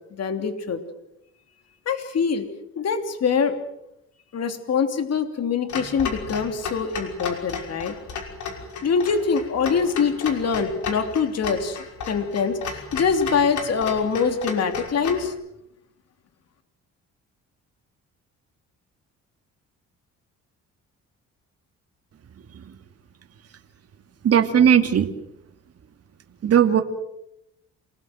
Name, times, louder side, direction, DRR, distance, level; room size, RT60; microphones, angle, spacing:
voice 1, 0.1-0.8 1.8-2.5 2.8-3.6 4.3-7.9 8.8-11.8 12.0-15.3, left 6 dB, 55° left, 8 dB, 3.1 m, -24 dB
Clock, 5.7-15.3, left 5 dB, 75° left, 5.8 m, -34 dB
voice 2, 24.2-25.1 26.4-26.8, right 8 dB, 55° right, 6 dB, 2.2 m, -17 dB
28.0 x 19.5 x 7.8 m, 0.83 s
cardioid pair, 90°, 30 cm